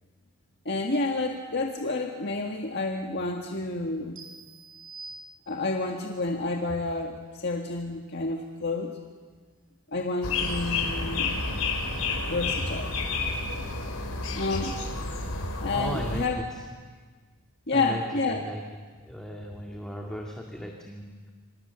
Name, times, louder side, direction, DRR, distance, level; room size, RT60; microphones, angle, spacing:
voice 1, 0.7-4.2 5.5-9.0 9.9-11.3 12.2-13.0 14.4-14.8 15.6-16.4 17.7-18.4, left 3 dB, 50° left, 1 dB, 1.8 m, -29 dB
sound 1, 4.2-5.9, right 3 dB, 65° right, 3.7 m, -46 dB
sound 2, 10.2-16.2, left 3 dB, 85° left, 4.8 m, -30 dB
voice 2, 15.7-16.6 17.7-18.6 18.9-21.3, equal, 5° left, 0 dB, 2.0 m, -37 dB
27.0 x 26.5 x 7.0 m, 1.5 s
head